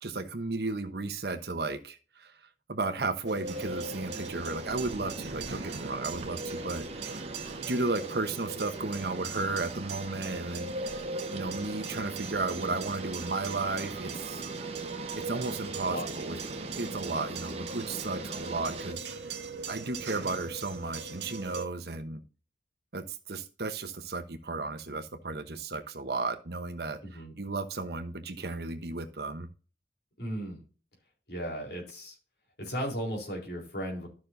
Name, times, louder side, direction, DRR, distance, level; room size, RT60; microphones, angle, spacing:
voice 1, 0.0-2.3 2.7-6.9 7.6-10.7 11.3-14.4 15.1-19.1 19.7-22.2 22.9-29.5, right 3 dB, 65° right, 9 dB, 1.0 m, -34 dB
sound 1, 3.3-21.7, right 3 dB, 85° right, 1.3 m, -40 dB
sound 2, 3.5-18.9, right 2 dB, 35° right, 1.1 m, -41 dB
voice 2, 27.0-27.3 30.2-30.6 31.3-32.2 32.6-34.1, equal, 70° left, 0 dB, 3.9 m, -35 dB
12.5 x 6.3 x 2.7 m, 0.37 s
head